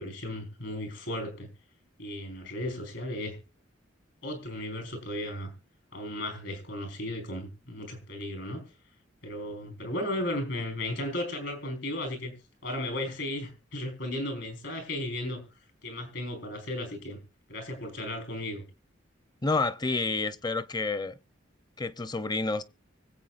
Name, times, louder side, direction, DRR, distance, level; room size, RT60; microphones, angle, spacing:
voice 1, 0.0-1.5 2.0-3.4 4.2-5.5 5.9-8.6 9.2-12.3 12.6-15.4 15.8-17.2 17.5-18.6, left 1 dB, 70° left, 4.6 m, -35 dB
voice 2, 19.4-21.1 21.8-22.6, left 3 dB, 20° left, 0.6 m, -29 dB
24.5 x 8.2 x 2.5 m
head